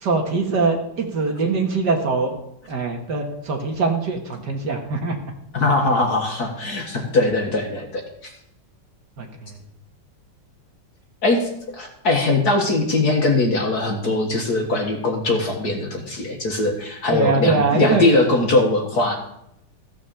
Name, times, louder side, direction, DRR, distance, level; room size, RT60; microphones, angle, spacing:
voice 1, 0.0-2.4 2.7-5.1 9.2-9.3 17.1-18.0, right 4 dB, 55° right, 3 dB, 2.1 m, -22 dB
voice 2, 5.5-8.3 11.2-19.2, left 2 dB, 50° left, 2 dB, 2.1 m, -21 dB
15.0 x 6.4 x 7.0 m, 0.79 s
omnidirectional pair, 2.3 m